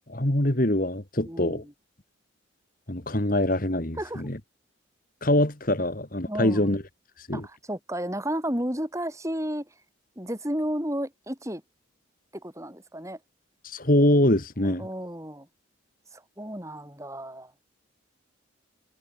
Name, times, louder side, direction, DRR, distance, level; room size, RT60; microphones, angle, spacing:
voice 1, 0.1-1.6 2.9-4.4 5.2-6.8 7.2-7.5 13.6-14.9, left 1 dB, 40° left, 2.3 m, -24 dB
voice 2, 1.2-1.7 4.0-4.2 6.3-6.7 7.3-9.7 10.2-11.6 12.3-13.2 14.6-15.5 16.1-17.5, equal, 15° right, 6.9 m, -32 dB
head